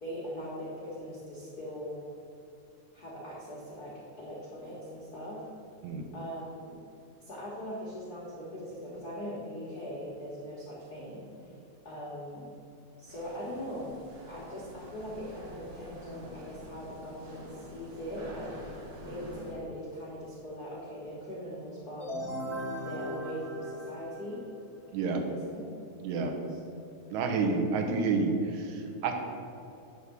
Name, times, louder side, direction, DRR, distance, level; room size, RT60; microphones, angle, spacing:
voice 1, 0.0-2.0 2.9-5.4 6.1-6.8 7.2-11.5 11.8-12.5 13.0-13.9 14.3-22.1 22.8-24.4 24.9-25.7 26.5-26.6, equal, 75° left, -6 dB, 0.9 m, -41 dB
sound 1, 13.1-19.5, right 1 dB, 90° right, 2.9 m, -47 dB
sound 2, 22.0-24.7, equal, 5° left, 0.3 m, -38 dB
voice 2, 26.0-26.3 27.1-29.1, right 4 dB, 75° right, 3 dB, 2.1 m, -29 dB
9.2 x 3.4 x 6.7 m, 2.7 s
omnidirectional pair, 3.7 m